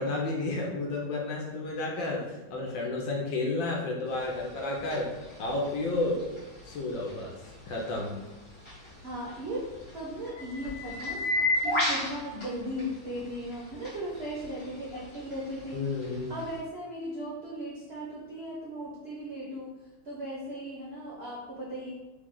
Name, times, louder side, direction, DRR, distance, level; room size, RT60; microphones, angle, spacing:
voice 1, 0.0-5.1 5.4-6.2 6.6-7.4 7.7-8.1 15.7-16.4, left 2 dB, 70° left, -1 dB, 1.3 m, -31 dB
sound 1, 4.1-16.6, left 1 dB, 30° left, 1.3 m, -36 dB
voice 2, 9.0-9.7 9.9-15.9 16.3-21.9, equal, 55° right, -7 dB, 0.6 m, -37 dB
3.7 x 3.2 x 3.8 m, 1.1 s
omnidirectional pair, 2.4 m